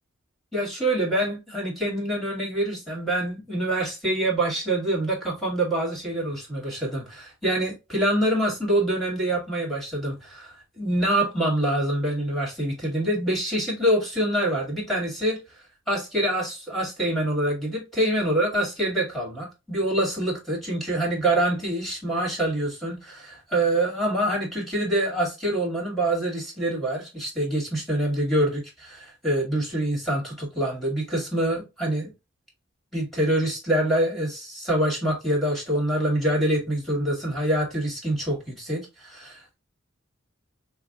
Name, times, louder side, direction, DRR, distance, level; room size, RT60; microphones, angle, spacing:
voice 1, 0.5-15.4 15.9-32.1 32.9-39.5, right 1 dB, ahead, 2.1 m, -25 dB
5.6 x 2.4 x 2.4 m
head